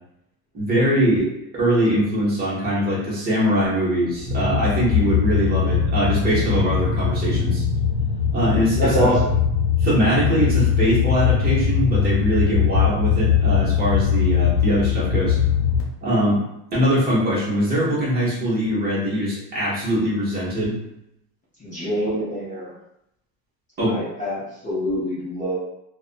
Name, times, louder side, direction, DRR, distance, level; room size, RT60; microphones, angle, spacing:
voice 1, 0.5-1.3 1.5-7.6 8.3-9.2 9.8-15.4 16.0-16.4 16.7-20.8 23.8-24.0, equal, 25° right, -7 dB, 0.8 m, -22 dB
sound 1, 4.2-15.8, left 8 dB, 60° left, 0.8 m, -21 dB
sound 2, 4.2-11.0, right 2 dB, 60° right, 0.5 m, -32 dB
voice 2, 8.8-9.2 21.6-22.7 23.8-25.6, equal, 20° left, -9 dB, 0.6 m, -25 dB
2.4 x 2.1 x 2.4 m, 0.81 s
cardioid pair, 155°, 38 cm